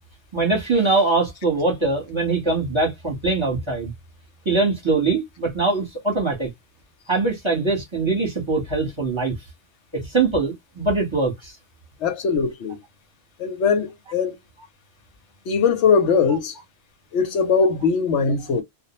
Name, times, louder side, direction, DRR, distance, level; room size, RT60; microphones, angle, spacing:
voice 1, 0.3-3.9 4.4-6.5 7.1-9.3 9.9-11.5, right 3 dB, 25° right, 0.9 m, -22 dB
voice 2, 12.0-12.8 13.4-14.4 15.5-16.5 17.1-18.6, left 5 dB, 85° left, 0.9 m, -20 dB
2.2 x 2.0 x 2.9 m
omnidirectional pair, 1.2 m